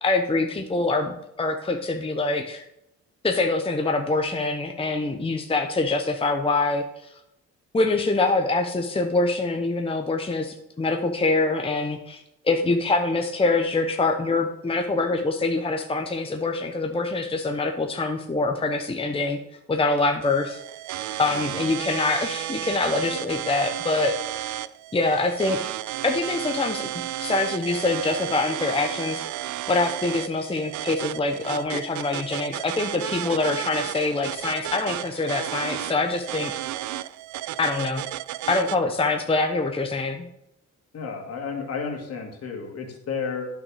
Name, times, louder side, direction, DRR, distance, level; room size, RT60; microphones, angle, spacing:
voice 1, 0.0-2.7 3.2-7.1 7.7-19.4 19.7-20.6 21.2-24.6 24.9-25.7 26.0-26.9 27.2-29.2 29.7-36.6 37.6-38.0 38.4-40.3, left 3 dB, 20° left, 5 dB, 0.8 m, -25 dB
sound 1, 20.2-38.8, right 14 dB, 70° right, 0.4 m, -33 dB
voice 2, 40.9-43.5, left 5 dB, 55° left, 2 dB, 2.2 m, -32 dB
9.3 x 6.0 x 4.9 m, 0.83 s
cardioid pair, 90°, 30 cm